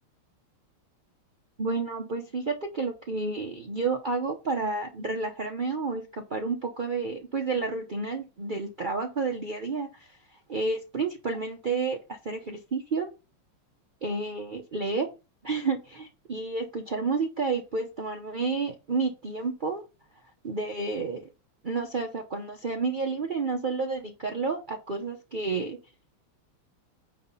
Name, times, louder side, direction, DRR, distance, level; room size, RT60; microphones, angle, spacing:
voice 1, 1.6-10.2 10.5-13.1 14.0-15.1 15.4-19.8 20.4-21.3 21.6-25.8, right 4 dB, 60° right, 0.5 m, -30 dB
9.2 x 3.3 x 5.6 m
omnidirectional pair, 2.3 m